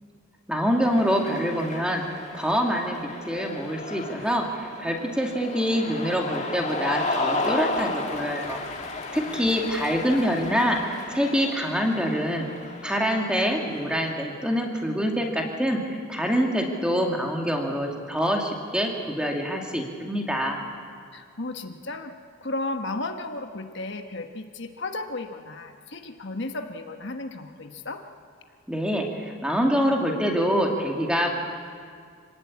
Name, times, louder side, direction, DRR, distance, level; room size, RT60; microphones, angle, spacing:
voice 1, 0.5-2.0 2.3-3.0 3.3-8.6 9.1-12.5 12.8-20.6 28.7-31.3, equal, 5° right, 1 dB, 2.4 m, -25 dB
Cheering, 0.8-14.3, left 3 dB, 30° left, 2.3 m, -34 dB
voice 2, 9.2-9.7 21.1-22.1 22.4-28.0, left 2 dB, 55° left, 5 dB, 1.3 m, -34 dB
26.0 x 18.5 x 8.6 m, 2.1 s
head